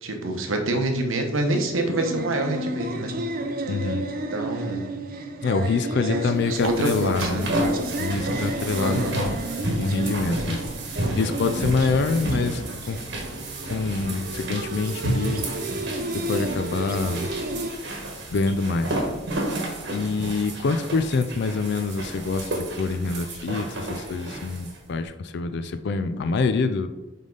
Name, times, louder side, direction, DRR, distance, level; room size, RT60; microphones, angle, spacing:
voice 1, 0.0-3.1 4.3-4.8 6.1-7.4 8.8-9.2, right 1 dB, 85° right, 4 dB, 1.0 m, -26 dB
sound 1, 1.5-17.7, right 2 dB, 45° right, 0.5 m, -33 dB
voice 2, 3.7-4.1 5.4-7.5 8.0-9.3 9.8-10.6 11.1-13.0 13.7-15.4 16.1-17.3 18.3-19.0 19.9-26.9, left 4 dB, 55° left, 9 dB, 0.4 m, -26 dB
sound 2, 6.4-24.8, right 1 dB, 60° right, 1.2 m, -31 dB
5.4 x 5.0 x 3.9 m, 1.0 s
head